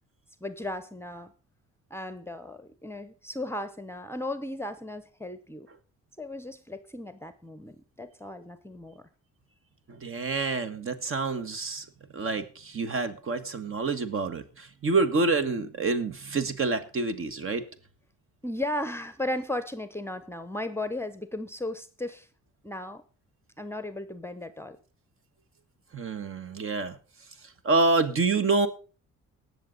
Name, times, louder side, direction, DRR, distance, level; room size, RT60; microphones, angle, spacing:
voice 1, 0.4-1.3 1.9-5.7 6.2-9.0 18.4-22.3 22.6-23.0 23.6-24.8, left 1 dB, 10° left, 12 dB, 0.8 m, -35 dB
voice 2, 9.9-11.8 12.1-17.6 25.9-27.0 27.6-28.7, right 3 dB, 45° right, 11 dB, 1.4 m, -27 dB
19.0 x 6.8 x 4.0 m, 0.36 s
cardioid pair, 90°, 30 cm